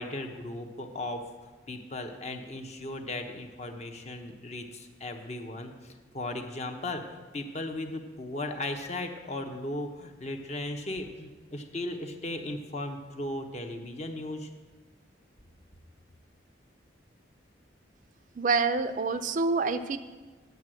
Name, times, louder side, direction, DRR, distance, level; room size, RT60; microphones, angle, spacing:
voice 1, 0.0-14.5, left 1 dB, 35° left, 5 dB, 0.8 m, -37 dB
voice 2, 18.4-20.0, right 4 dB, 45° right, 10 dB, 0.4 m, -27 dB
9.3 x 6.7 x 6.2 m, 1.3 s
head